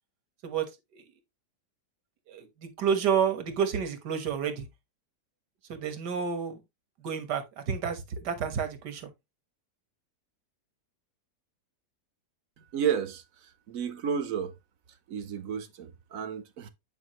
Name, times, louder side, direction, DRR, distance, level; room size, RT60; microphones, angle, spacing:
voice 1, 0.4-1.0 2.3-4.7 5.7-6.6 7.0-9.1, right 7 dB, 85° right, 1.9 m, -30 dB
voice 2, 12.7-13.2 13.7-14.5 15.1-16.7, right 7 dB, 60° right, 1.2 m, -31 dB
9.4 x 5.0 x 2.9 m
omnidirectional pair, 1.8 m